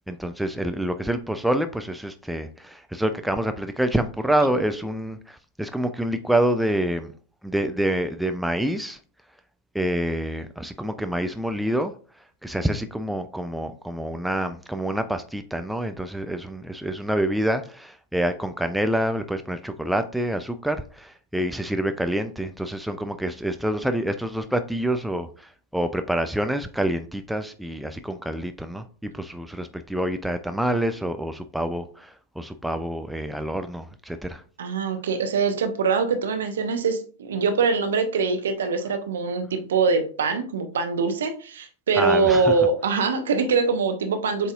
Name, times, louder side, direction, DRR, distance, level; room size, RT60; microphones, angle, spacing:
voice 1, 0.1-7.1 7.4-9.0 9.7-11.9 12.4-34.4 42.0-42.5, right 1 dB, ahead, 0.3 m, -27 dB
voice 2, 34.6-44.5, right 4 dB, 65° right, 0.7 m, -23 dB
7.5 x 2.7 x 2.4 m
figure-of-eight pair, 90°, 0 cm